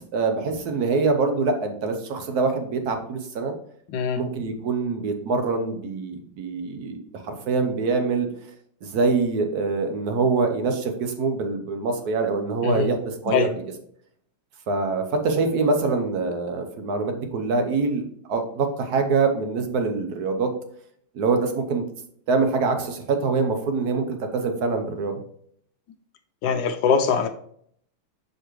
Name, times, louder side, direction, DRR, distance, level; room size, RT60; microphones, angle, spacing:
voice 1, 0.0-3.5 4.2-7.0 7.2-8.3 8.8-13.6 14.7-20.5 21.1-21.9 22.3-25.2, right 4 dB, 60° right, 6 dB, 1.1 m, -24 dB
voice 2, 26.4-27.3, left 6 dB, 75° left, 7 dB, 1.2 m, -22 dB
6.4 x 5.1 x 3.1 m, 0.65 s
omnidirectional pair, 2.3 m